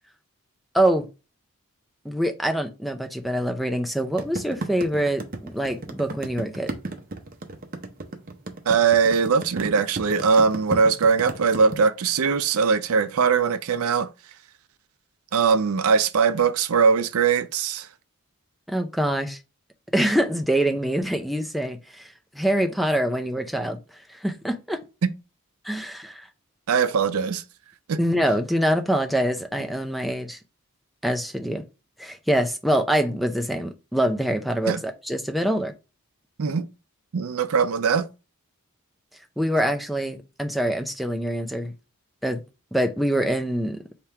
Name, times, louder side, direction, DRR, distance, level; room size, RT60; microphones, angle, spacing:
voice 1, 0.7-1.1 2.0-6.7 18.7-19.4 19.9-23.8 24.1-24.8 25.6-26.3 28.0-30.4 31.0-31.6 32.0-35.7 39.4-41.7 42.2-42.4 42.7-43.8, right 1 dB, ahead, 0.4 m, -25 dB
sound 1, 4.2-11.8, right 2 dB, 40° right, 0.6 m, -33 dB
voice 2, 8.7-14.1 15.3-17.9 26.7-27.4 27.9-28.0 34.7-34.8 36.4-36.7 37.1-38.1, right 5 dB, 85° right, 0.5 m, -21 dB
3.5 x 2.9 x 4.4 m
head